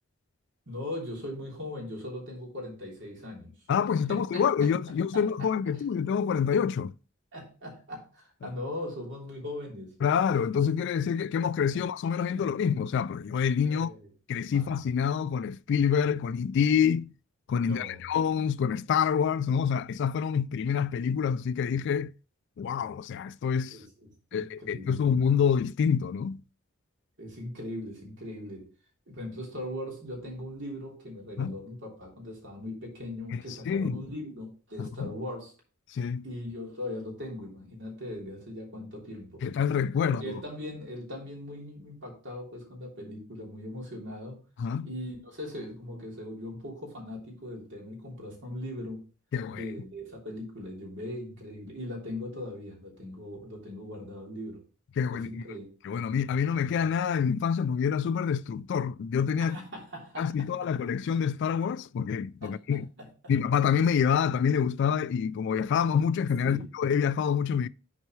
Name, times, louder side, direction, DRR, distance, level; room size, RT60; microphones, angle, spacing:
voice 1, 0.7-3.5 4.1-5.5 7.3-9.9 11.7-11.8 12.3-12.5 13.7-14.1 14.5-14.7 17.6-18.1 23.7-25.0 27.2-28.7 29.1-35.5 36.2-39.4 40.0-44.4 44.8-49.0 49.5-54.6 55.1-55.6 59.4-60.7 62.4-63.1 66.4-66.7, left 1 dB, 60° right, 3.2 m, -40 dB
voice 2, 3.7-6.9 10.0-13.9 14.3-17.1 17.5-22.1 22.6-23.8 24.3-26.4 31.4-31.6 33.3-34.0 34.8-35.1 35.9-36.2 39.4-40.4 44.6-44.9 49.3-49.6 55.0-55.4 55.8-59.6 60.2-62.9 63.3-67.7, left 7 dB, 60° left, 0.3 m, -27 dB
11.0 x 4.6 x 3.1 m
head